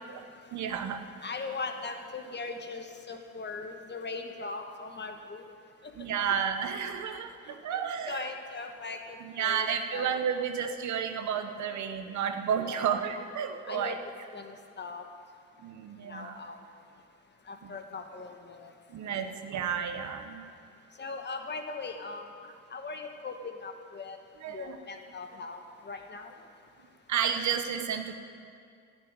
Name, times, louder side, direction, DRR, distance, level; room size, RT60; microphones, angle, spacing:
voice 1, 0.2-1.0 6.0-8.3 9.2-14.0 15.6-16.4 17.6-17.7 18.9-20.4 24.4-24.8 27.1-28.1, right 7 dB, 70° right, 7 dB, 1.1 m, -32 dB
voice 2, 1.2-5.5 5.8-5.9 6.2-6.3 7.5-10.2 12.6-13.2 13.7-14.0 14.3-15.0 16.1-16.6 17.5-18.7 19.1-19.3 21.0-22.3 22.7-24.2 24.5-26.3, left 4 dB, 35° left, 5 dB, 1.3 m, -40 dB
11.5 x 7.5 x 9.0 m, 2.3 s
cardioid pair, 90°, 30 cm